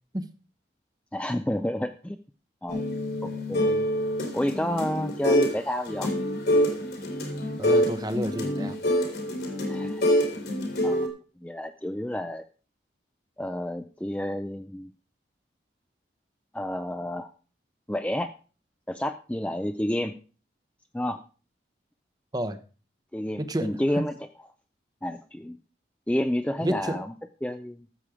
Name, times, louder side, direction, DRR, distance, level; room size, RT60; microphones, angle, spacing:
voice 1, 1.1-2.2 2.6-2.9 3.2-3.9 4.3-6.1 9.6-10.2 10.8-11.1 11.4-12.4 13.4-14.9 16.5-17.3 17.9-18.3 18.9-20.1 20.9-21.2 23.1-24.1 25.0-25.6 26.1-27.1 27.4-27.9, left 1 dB, 5° left, 8 dB, 0.4 m, -30 dB
sound 1, 2.7-5.6 5.9-11.1, equal, 65° left, 2.8 m, -26 dB
voice 2, 7.6-8.8 22.3-22.6 23.4-24.1 26.6-27.0, right 1 dB, 20° right, 10 dB, 0.9 m, -30 dB
13.5 x 7.5 x 4.9 m, 0.37 s
head